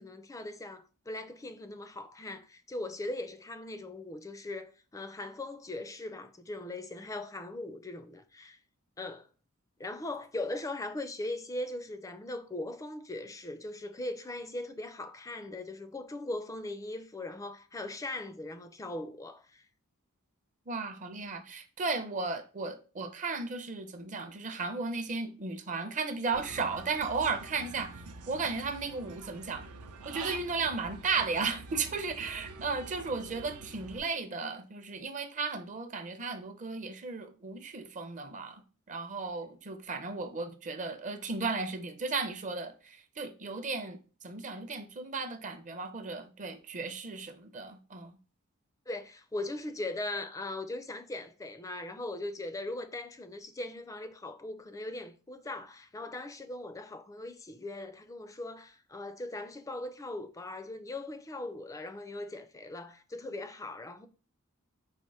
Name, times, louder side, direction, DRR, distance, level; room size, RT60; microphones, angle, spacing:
voice 1, 0.0-8.6 9.0-9.3 9.8-19.7 48.9-64.1, left 2 dB, 15° left, 0.4 m, -39 dB
voice 2, 20.7-27.9 28.3-29.6 30.0-38.6 38.9-44.0 44.2-48.2, right 4 dB, 35° right, 0.5 m, -35 dB
Human voice / Bird, 26.3-34.0, right 4 dB, 90° right, 0.6 m, -46 dB
4.3 x 2.5 x 4.7 m
head